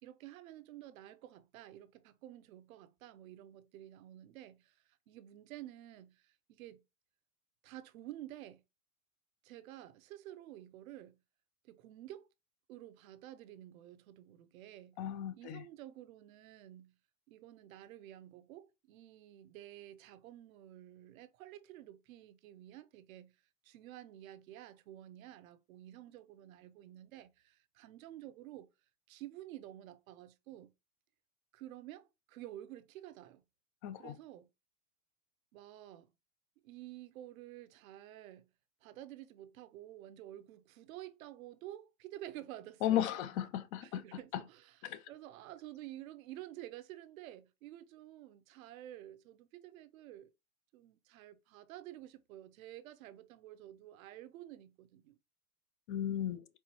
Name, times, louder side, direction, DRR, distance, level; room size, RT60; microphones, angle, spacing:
voice 1, 0.0-6.8 7.6-8.6 9.4-11.2 11.6-12.3 12.7-15.0 15.3-16.9 17.3-23.3 23.6-28.7 29.1-30.7 31.5-33.4 33.9-34.5 35.5-36.1 36.6-38.5 38.8-43.3 43.8-44.7 45.1-50.3 50.7-55.2, right 13 dB, 70° right, 0.8 m, -51 dB
voice 2, 15.0-15.6 33.8-34.1 42.8-44.0 44.8-45.1 55.9-56.5, left 11 dB, 50° left, 0.6 m, -35 dB
4.4 x 4.0 x 3.0 m
hypercardioid pair, 115°, 43 cm